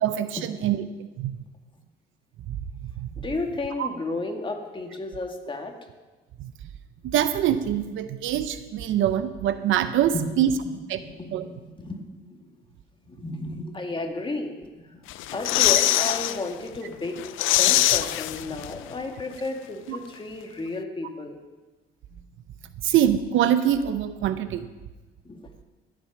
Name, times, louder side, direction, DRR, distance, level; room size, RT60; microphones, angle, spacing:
voice 1, 0.0-1.4 2.5-2.6 3.0-3.1 3.8-3.9 6.4-6.5 7.0-10.5 10.9-11.0 11.3-11.5 19.9-20.0 22.8-24.7, right 10 dB, 80° right, 11 dB, 0.7 m, -24 dB
voice 2, 3.2-5.7 10.1-12.5 13.1-15.0 15.3-17.2 17.5-21.4 22.1-22.2 22.6-22.7 25.2-25.5, left 2 dB, 25° left, 3 dB, 1.9 m, -33 dB
sound 1, 15.1-16.4 16.8-16.9 17.2-18.9 19.2-19.3, left 15 dB, 85° left, 0.4 m, -22 dB
15.5 x 7.7 x 5.9 m, 1.2 s
cardioid pair, 90°, 20 cm